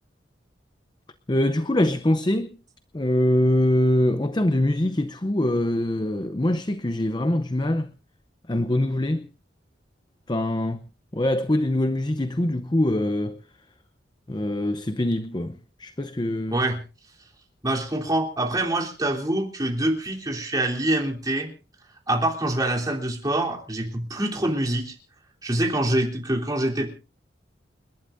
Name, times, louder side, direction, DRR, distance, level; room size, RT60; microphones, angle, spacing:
voice 1, 1.3-2.6 2.9-7.9 8.5-9.3 10.3-10.8 11.1-13.4 14.3-16.6, left 1 dB, 25° left, 0.7 m, -23 dB
voice 2, 17.6-21.5 22.1-24.9 25.4-26.9, right 1 dB, 20° right, 3.4 m, -25 dB
30.0 x 11.5 x 2.6 m
head